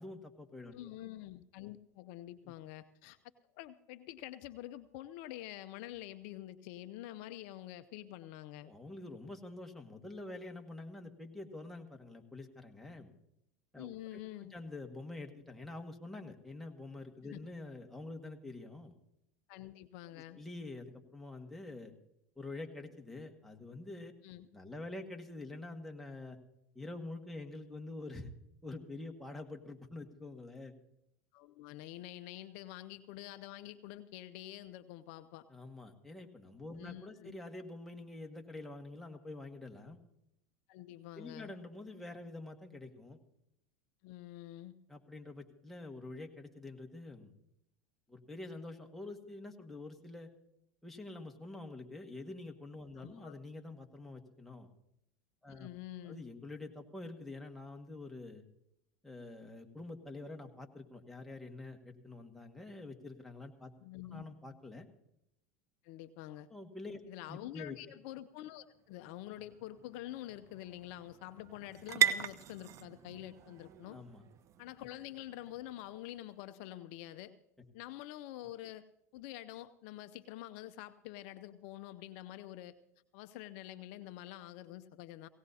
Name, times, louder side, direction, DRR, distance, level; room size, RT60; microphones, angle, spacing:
voice 1, 0.0-0.9 8.6-13.1 13.7-18.9 20.1-21.9 22.4-24.1 24.5-26.4 26.8-28.3 28.6-30.7 35.5-40.0 41.1-43.2 44.9-47.3 48.1-50.3 50.8-54.7 55.4-55.7 56.0-58.4 59.0-63.7 64.1-64.9 66.5-67.0 67.3-68.0 73.9-74.2, left 2 dB, ahead, 2 dB, 1.8 m, -47 dB
voice 2, 0.7-3.2 3.5-8.7 13.8-14.5 17.3-17.4 19.5-20.4 24.2-24.5 31.3-35.5 36.8-37.4 40.7-41.5 44.0-44.7 53.0-53.3 55.5-56.2 63.8-64.2 65.8-66.5 67.1-74.0 74.6-77.3 77.7-78.8 79.1-82.8 83.1-85.3, left 14 dB, 60° left, 12 dB, 0.6 m, -47 dB
sound 1, 68.4-76.2, right 9 dB, 40° right, 0.7 m, -39 dB
17.5 x 17.5 x 2.8 m, 0.79 s
hypercardioid pair, 95°, 8 cm